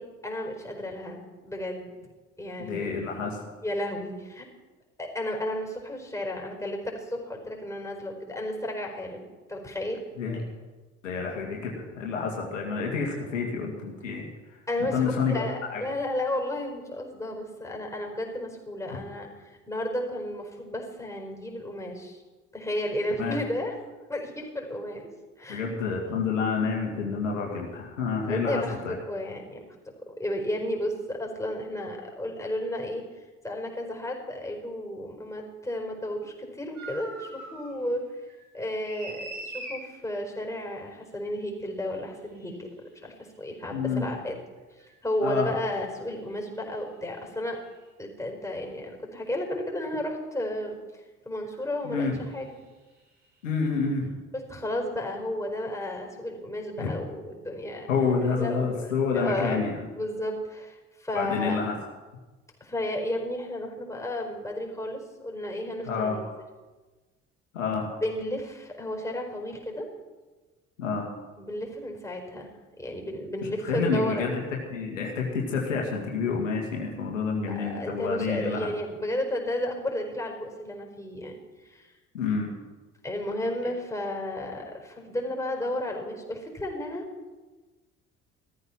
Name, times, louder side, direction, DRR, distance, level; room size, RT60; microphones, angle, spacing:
voice 1, 0.0-1.9 2.4-2.9 3.6-4.4 5.0-10.0 14.7-22.2 22.5-23.7 24.1-25.0 25.4-25.7 28.2-38.0 38.5-42.7 42.9-44.3 44.8-47.6 48.0-52.1 52.3-52.5 54.5-61.6 62.6-66.2 68.0-69.9 71.4-72.5 72.8-74.4 77.5-81.9 83.0-87.0, left 1 dB, 10° left, 1 dB, 4.7 m, -33 dB
voice 2, 2.6-3.4 10.2-10.4 11.0-14.3 14.9-15.4 15.7-15.8 23.2-23.4 25.5-28.9 43.7-44.1 45.2-45.5 51.8-52.2 53.4-54.2 56.8-56.9 57.9-59.9 61.1-61.7 65.9-66.2 67.5-67.9 70.8-71.1 73.6-74.4 74.7-78.7 82.1-82.6, left 5 dB, 80° left, -1 dB, 2.1 m, -28 dB
sound 1, 36.7-37.7 38.1-39.8 41.8-41.9 44.8-44.9 47.6-47.7 49.4-49.6 51.4-51.6 51.9-52.1, right 1 dB, 80° right, 7.0 m, -41 dB
15.5 x 14.0 x 5.9 m, 1.3 s
figure-of-eight pair, 50°, 38 cm